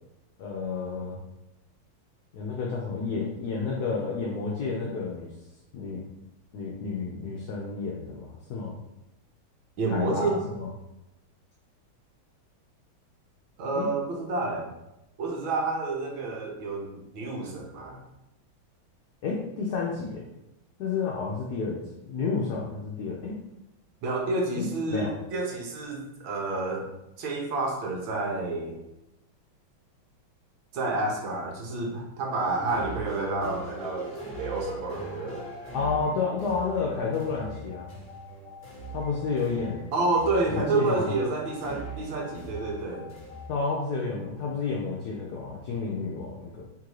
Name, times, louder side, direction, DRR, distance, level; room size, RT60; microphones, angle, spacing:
voice 1, 0.4-1.2 2.3-5.3 5.7-6.0 6.5-8.8 9.9-10.7 13.8-13.9 19.2-20.3 20.8-23.4 24.6-25.1 35.7-37.9 38.9-39.9 40.5-41.1 43.5-46.6, left 4 dB, 65° left, -2 dB, 1.0 m, -31 dB
voice 2, 9.8-10.4 13.6-14.7 15.2-18.0 24.0-26.9 27.2-28.8 30.7-34.1 34.4-35.4 39.9-43.1, right 3 dB, 75° right, 0 dB, 1.6 m, -29 dB
sound 1, 32.5-43.5, right 1 dB, 10° left, 1.1 m, -41 dB
3.7 x 2.6 x 4.6 m, 0.91 s
omnidirectional pair, 2.3 m